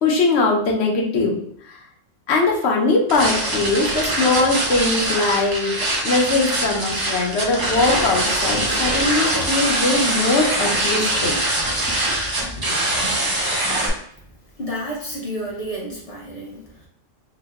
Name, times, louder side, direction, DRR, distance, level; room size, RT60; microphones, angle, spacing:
voice 1, 0.0-1.3 1.7-1.8 2.3-5.7 6.0-11.4 13.0-13.1, left 3 dB, 65° left, -1 dB, 0.9 m, -21 dB
sound 1, 3.1-13.9, right 1 dB, 35° right, 0.3 m, -23 dB
voice 2, 14.6-16.9, equal, 30° left, -4 dB, 0.9 m, -31 dB
2.9 x 2.1 x 3.4 m, 0.66 s
omnidirectional pair, 1.3 m